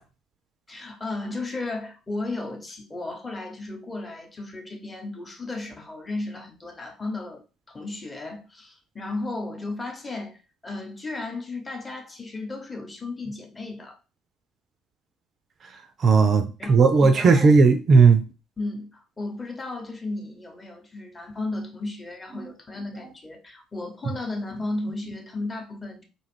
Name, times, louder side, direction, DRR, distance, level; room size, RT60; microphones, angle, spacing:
voice 1, 0.7-7.4 7.7-14.0 16.6-17.5 18.6-26.0, left 2 dB, 20° left, 0.8 m, -34 dB
voice 2, 16.0-18.2, right 4 dB, 40° right, 0.3 m, -16 dB
2.5 x 2.3 x 3.3 m
figure-of-eight pair, 55°, 0 cm